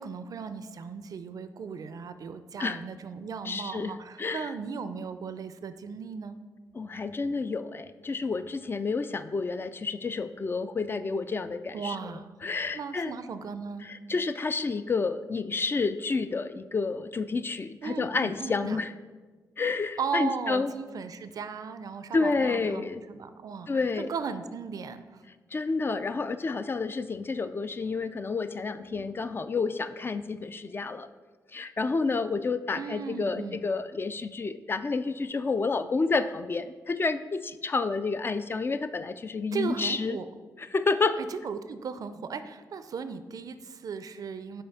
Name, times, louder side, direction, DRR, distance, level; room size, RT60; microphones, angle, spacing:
voice 1, 0.0-6.4 11.7-12.3 12.7-13.9 17.8-18.8 20.0-23.7 24.0-25.2 32.8-33.6 39.5-40.3 41.2-44.6, right 5 dB, 55° right, 11 dB, 0.4 m, -36 dB
voice 2, 3.5-4.5 6.7-12.0 12.4-13.1 13.8-18.9 19.6-20.7 22.1-23.0 23.7-24.1 25.5-31.1 31.5-40.2 40.6-41.2, left 4 dB, 30° left, 11 dB, 0.3 m, -30 dB
5.6 x 4.2 x 5.3 m, 1.3 s
cardioid pair, 75°, 7 cm